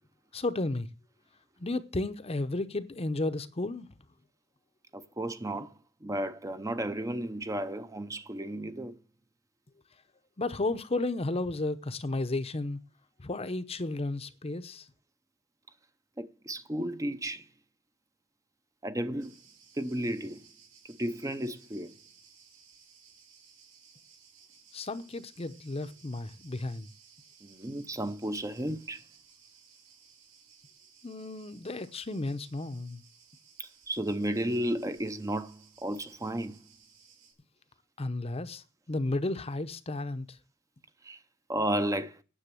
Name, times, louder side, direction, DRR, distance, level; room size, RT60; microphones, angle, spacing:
voice 1, 0.3-0.9 1.6-3.9 10.4-12.8 13.2-14.9 24.7-26.9 31.0-33.0 38.0-40.4, left 2 dB, 30° left, 0.8 m, -33 dB
voice 2, 4.9-5.7 6.0-9.0 16.2-17.5 18.8-19.3 19.8-20.4 20.9-21.9 27.4-29.0 33.6-36.6 41.0-41.2 41.5-42.2, right 1 dB, 15° right, 0.6 m, -33 dB
Cricket, 19.2-37.3, right 6 dB, 70° right, 5.2 m, -59 dB
9.9 x 7.1 x 9.1 m
head